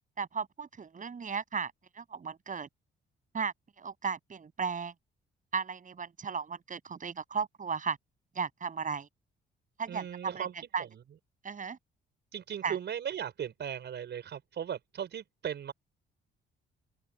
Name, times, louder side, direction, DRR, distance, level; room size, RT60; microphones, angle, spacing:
voice 1, 0.2-2.7 3.3-4.9 5.5-8.0 8.3-9.1 9.8-10.5 10.7-10.8 11.4-11.8 12.6-12.8, right 6 dB, 40° right, 7.2 m, -35 dB
voice 2, 9.9-11.0 12.3-15.7, right 9 dB, 60° right, 5.4 m, -38 dB
open air
cardioid pair, 90°, 20 cm